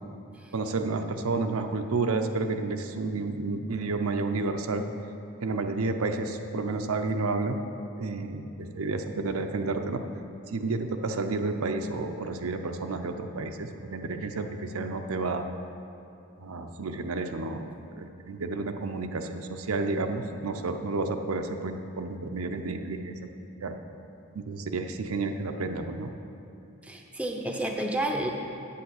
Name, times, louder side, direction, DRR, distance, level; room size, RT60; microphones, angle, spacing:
voice 1, 0.5-4.8 5.4-7.6 8.0-10.0 10.5-15.5 16.4-17.7 18.0-23.2 23.6-23.8 24.3-26.1, right 3 dB, 90° right, 6 dB, 0.7 m, -31 dB
voice 2, 26.8-28.3, right 1 dB, 5° right, 1 dB, 0.6 m, -30 dB
8.5 x 8.2 x 6.5 m, 2.6 s
head